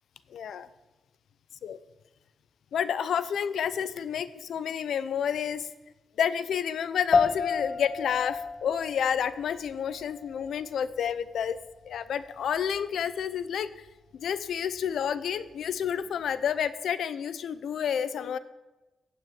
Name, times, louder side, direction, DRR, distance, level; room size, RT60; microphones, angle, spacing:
voice 1, 0.3-0.7 1.6-1.8 2.7-5.7 6.2-11.6 11.8-13.7 14.1-18.4, left 8 dB, 75° left, 14 dB, 0.7 m, -30 dB
sound 1, 7.1-16.7, left 5 dB, 45° left, 1.1 m, -33 dB
15.5 x 6.3 x 9.2 m, 1.1 s
wide cardioid pair, 145°, 0 cm